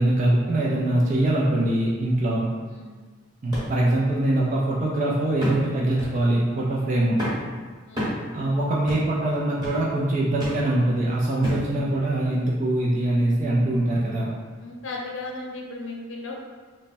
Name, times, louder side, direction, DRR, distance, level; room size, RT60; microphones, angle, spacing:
voice 1, 0.0-2.5 3.4-7.2 8.3-14.3, right 1 dB, 40° right, -5 dB, 0.4 m, -23 dB
sound 1, 3.5-3.7 4.2-4.3 5.4-5.7 6.0-6.2 7.2-7.5 8.0-8.2 8.9-9.1 9.6-9.8 10.4-10.6 11.4-11.7 12.4-12.5, equal, 20° right, 1.0 m, -30 dB
voice 2, 7.9-8.3 14.6-16.3, left 2 dB, 70° left, -1 dB, 0.6 m, -36 dB
3.3 x 2.1 x 4.1 m, 1.4 s
head